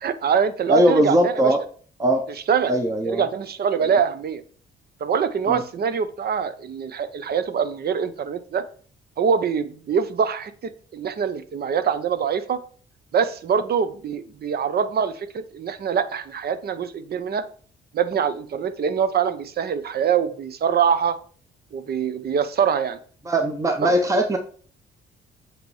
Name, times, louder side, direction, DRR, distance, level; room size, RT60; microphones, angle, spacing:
voice 1, 0.0-1.3 2.5-2.7 3.0-4.4 5.0-8.6 9.2-12.6 13.1-17.4 17.9-21.2 21.7-23.0 23.8-23.9, right 7 dB, 50° right, 12 dB, 0.8 m, -24 dB
voice 2, 0.7-1.6 2.0-2.2 2.7-3.2 5.5-5.6 23.2-24.4, right 1 dB, 15° right, 5 dB, 0.8 m, -20 dB
8.0 x 3.1 x 4.8 m, 0.44 s
cardioid pair, 90°, 20 cm